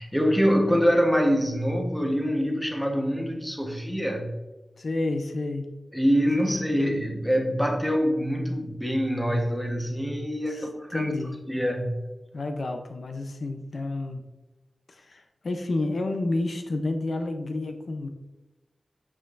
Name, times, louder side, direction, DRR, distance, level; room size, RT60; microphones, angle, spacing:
voice 1, 0.0-4.3 5.9-11.2 11.5-12.1, equal, ahead, 1 dB, 1.2 m, -25 dB
voice 2, 4.8-5.7 6.4-6.6 10.5-11.4 12.3-14.2 14.9-18.1, left 2 dB, 65° left, 6 dB, 0.6 m, -30 dB
7.4 x 6.3 x 2.6 m, 1.1 s
wide cardioid pair, 90°, 0 cm